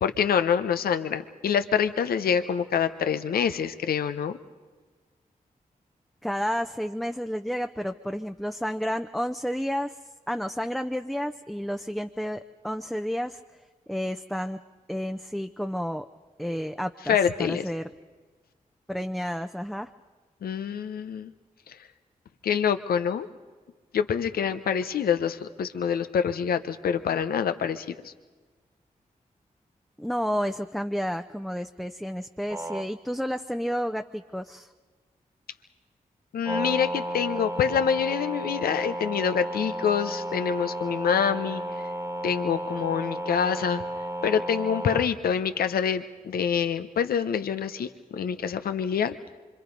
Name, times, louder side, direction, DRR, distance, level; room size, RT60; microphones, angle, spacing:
voice 1, 0.0-4.4 17.1-17.6 20.4-21.3 21.7-21.8 22.4-23.3 23.9-28.1 36.3-41.6 42.2-43.8 44.2-49.2, left 7 dB, 85° left, 10 dB, 0.8 m, -26 dB
voice 2, 6.2-10.0 10.3-13.4 13.9-14.6 14.9-16.1 16.4-17.9 18.9-19.9 30.0-34.7, equal, ahead, 5 dB, 0.7 m, -31 dB
sound 1, 32.5-32.9 36.4-45.0, right 1 dB, 20° right, 1.6 m, -33 dB
25.5 x 25.0 x 5.3 m, 1.4 s
cardioid pair, 40°, 15 cm